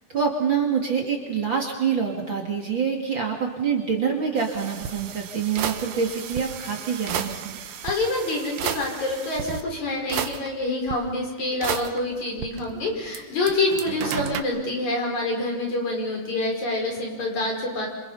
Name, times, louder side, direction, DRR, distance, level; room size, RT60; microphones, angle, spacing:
voice 1, 0.1-7.6, right 6 dB, 40° right, 0 dB, 2.7 m, -26 dB
sound 1, 4.4-9.6 10.1-10.9 11.6-13.2 13.5-14.4, right 8 dB, 80° right, 2.8 m, -33 dB
voice 2, 7.8-17.9, left 2 dB, 60° left, 0 dB, 6.5 m, -27 dB
27.5 x 26.5 x 5.6 m, 1.3 s
omnidirectional pair, 3.8 m